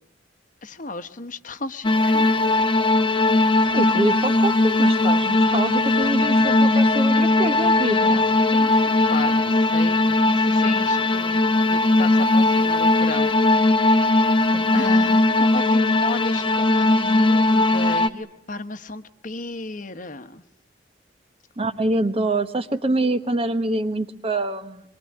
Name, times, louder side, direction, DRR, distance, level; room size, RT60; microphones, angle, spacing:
voice 1, 0.6-2.4 8.1-11.4 11.7-13.4 14.7-20.4, left 2 dB, 45° left, 10 dB, 1.1 m, -34 dB
sound 1, 1.8-18.1, left 2 dB, 30° left, 1.0 m, -19 dB
voice 2, 3.7-8.3 14.5-14.8 21.6-24.8, right 2 dB, 35° right, 10 dB, 1.2 m, -25 dB
25.0 x 23.0 x 9.8 m, 0.78 s
head